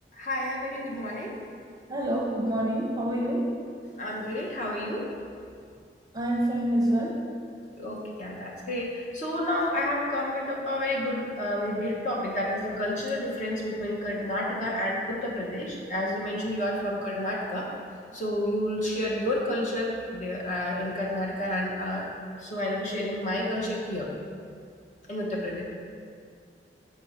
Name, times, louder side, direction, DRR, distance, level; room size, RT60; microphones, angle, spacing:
voice 1, 0.1-1.4 4.0-5.0 7.7-17.8 18.1-22.0 22.4-24.1 25.1-25.6, left 1 dB, 45° left, -4 dB, 1.1 m, -30 dB
voice 2, 1.9-3.4 6.1-7.2, right 1 dB, 20° right, -2 dB, 0.7 m, -26 dB
6.3 x 5.0 x 4.3 m, 2.3 s
head